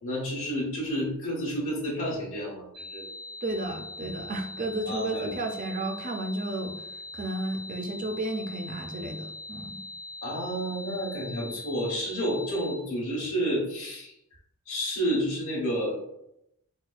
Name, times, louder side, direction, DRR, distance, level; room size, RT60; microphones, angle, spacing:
voice 1, 0.0-3.0 4.8-5.3 10.2-14.1 14.6-16.0, equal, 70° left, -7 dB, 1.0 m, -30 dB
sound 1, 2.7-12.7, left 2 dB, 80° right, 1.4 m, -42 dB
voice 2, 3.4-6.8 7.1-9.8, right 2 dB, 35° right, 4 dB, 0.4 m, -33 dB
4.1 x 2.3 x 2.3 m, 0.81 s
head